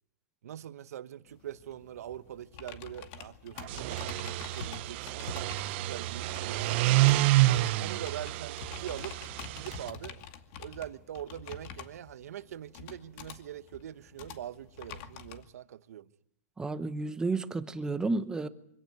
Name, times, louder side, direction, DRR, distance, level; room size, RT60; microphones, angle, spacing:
voice 1, 0.4-5.3 5.6-6.8 7.4-9.2 9.5-10.2 10.6-16.1, right 11 dB, 70° right, 1.2 m, -43 dB
sound 1, 1.3-15.4, left 7 dB, 40° left, 2.3 m, -47 dB
sound 2, 3.6-9.9, right 17 dB, 45° right, 0.9 m, -28 dB
voice 2, 16.6-18.5, right 3 dB, 10° right, 1.0 m, -31 dB
25.0 x 17.0 x 9.6 m
hypercardioid pair, 150°, 9 cm